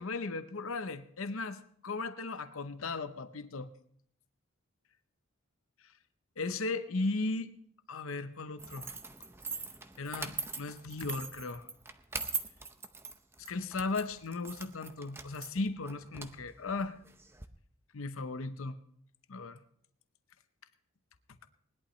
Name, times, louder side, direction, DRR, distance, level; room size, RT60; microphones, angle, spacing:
voice 1, 0.0-3.7 6.4-7.5 7.9-8.9 10.0-11.7 13.5-17.0 17.9-18.8 19.3-19.6, left 3 dB, 70° left, 11 dB, 0.7 m, -36 dB
sound 1, 8.6-17.5, right 4 dB, 10° right, 0.6 m, -42 dB
20.0 x 11.5 x 3.1 m, 0.64 s
head